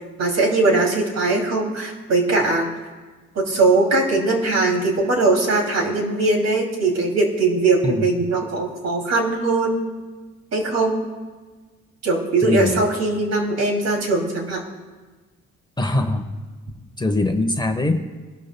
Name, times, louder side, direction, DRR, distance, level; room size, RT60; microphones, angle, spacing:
voice 1, 0.2-2.7 3.3-9.8 10.5-11.0 12.0-14.6, right 3 dB, 60° right, 1 dB, 2.7 m, -20 dB
voice 2, 12.4-12.8 15.8-16.3 17.0-18.0, left 2 dB, 15° left, 5 dB, 1.0 m, -22 dB
24.0 x 12.0 x 2.3 m, 1.3 s
cardioid pair, 90°, 30 cm